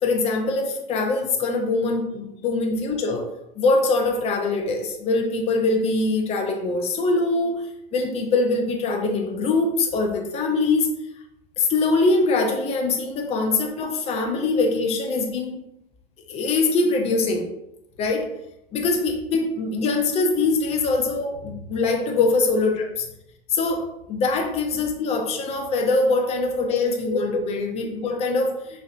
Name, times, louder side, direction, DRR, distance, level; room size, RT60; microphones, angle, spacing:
voice 1, 0.0-3.3 3.6-7.7 7.9-10.9 11.6-15.5 16.3-17.4 18.0-18.3 18.7-23.1 23.5-28.8, left 3 dB, 20° left, 3 dB, 0.5 m, -23 dB
4.4 x 2.3 x 2.4 m, 0.83 s
hypercardioid pair, 100°, 30 cm